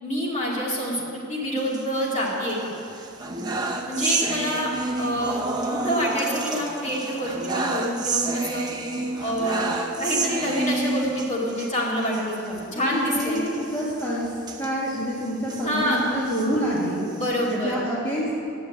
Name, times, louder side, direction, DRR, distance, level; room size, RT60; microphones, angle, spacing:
voice 1, 0.0-2.7 3.9-4.7 5.0-5.4 5.7-8.7 9.2-9.7 10.0-12.3 12.7-13.4 15.6-16.0 17.1-17.8, equal, 35° left, -4 dB, 2.4 m, -26 dB
sound 1, 1.6-2.5 2.9-11.7 12.1-12.2 12.5-12.6 13.1-15.6 16.1-17.5, right 3 dB, 20° right, 0.9 m, -29 dB
voice 2, 12.1-14.3 14.6-17.0 17.5-18.3, equal, 15° left, -8 dB, 1.8 m, -27 dB
10.0 x 7.3 x 8.6 m, 2.7 s
head